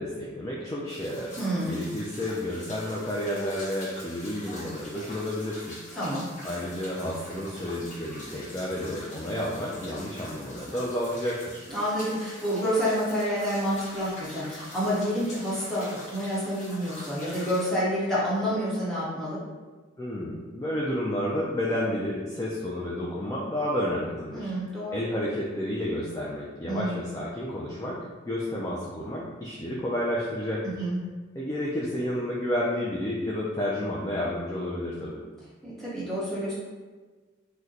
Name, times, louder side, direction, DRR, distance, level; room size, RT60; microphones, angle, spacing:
voice 1, 0.0-1.3 1.6-5.8 6.4-11.6 20.0-24.5 24.9-30.7 31.4-35.2, left 1 dB, 15° left, -5 dB, 0.3 m, -31 dB
sound 1, 0.9-17.7, left 1 dB, 40° left, 0.9 m, -44 dB
voice 2, 1.4-1.8 6.0-6.3 11.7-19.4 24.3-25.0 26.6-27.0 30.6-31.0 35.6-36.5, equal, ahead, -10 dB, 0.9 m, -28 dB
2.8 x 2.1 x 3.7 m, 1.3 s
head